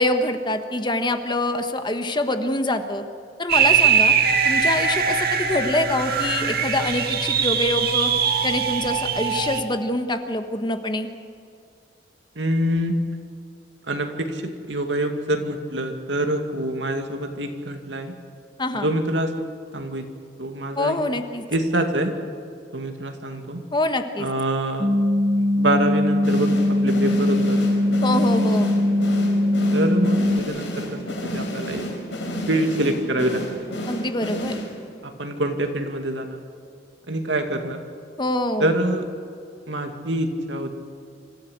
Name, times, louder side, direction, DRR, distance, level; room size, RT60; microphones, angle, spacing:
voice 1, 0.0-3.0 3.4-4.1 4.4-8.1 8.4-11.1 18.6-18.9 20.8-21.4 23.7-24.3 28.0-28.7 33.9-34.6 38.2-38.7, left 1 dB, 25° left, 7 dB, 1.3 m, -25 dB
sound 1, 3.5-9.6, right 6 dB, 60° right, 1.7 m, -21 dB
voice 2, 12.4-12.9 13.9-18.1 18.8-19.3 19.7-20.0 20.4-21.0 21.5-22.1 22.7-23.6 24.2-24.9 25.6-26.5 26.8-27.6 29.7-31.8 32.5-33.7 35.2-36.4 37.1-37.8 38.6-39.1 39.7-40.8, right 1 dB, 85° right, 5 dB, 2.3 m, -25 dB
sound 2, 24.8-30.4, left 1 dB, 25° right, 0.9 m, -20 dB
sound 3, 26.2-35.0, equal, 90° left, 5.1 m, -31 dB
26.0 x 14.5 x 8.1 m, 2.4 s
head